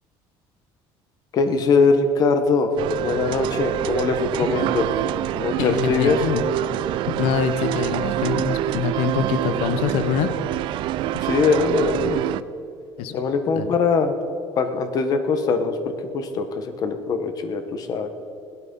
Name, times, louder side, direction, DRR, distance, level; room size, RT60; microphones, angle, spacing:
voice 1, 1.3-2.7 3.0-4.9 5.4-6.2 11.2-12.2 13.1-14.1 14.6-18.1, left 4 dB, 40° left, 8 dB, 1.2 m, -22 dB
sound 1, 2.8-12.4, right 13 dB, 55° right, 0.4 m, -26 dB
voice 2, 5.6-6.4 7.1-10.3 13.0-13.2 13.5-13.8, left 8 dB, 80° left, 10 dB, 0.9 m, -25 dB
17.0 x 12.5 x 5.4 m, 2.7 s
cardioid pair, 165°, 10 cm